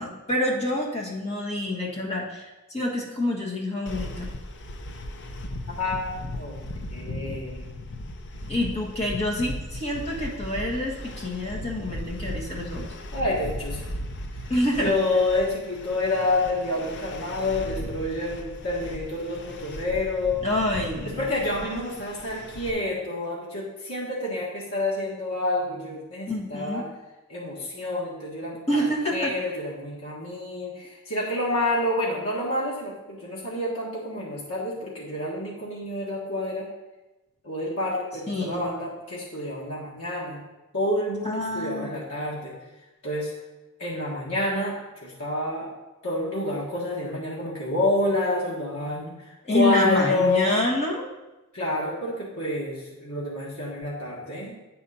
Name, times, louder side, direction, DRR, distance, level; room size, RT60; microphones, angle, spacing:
voice 1, 0.0-4.3 8.5-12.9 14.5-14.9 20.4-21.3 26.3-26.9 28.7-29.3 38.3-38.6 41.2-42.0 49.4-51.1, left 1 dB, 30° left, -2 dB, 1.5 m, -27 dB
sound 1, 3.9-22.7, left 1 dB, 55° left, 0.6 m, -37 dB
voice 2, 5.8-6.6 6.9-7.7 13.1-13.9 14.8-20.4 21.2-26.8 27.3-28.8 29.1-36.7 37.4-40.4 40.7-42.5 43.0-43.3 43.8-45.7 46.0-50.5 51.5-54.5, left 1 dB, 80° left, -5 dB, 1.6 m, -28 dB
8.6 x 4.3 x 5.5 m, 1.0 s
head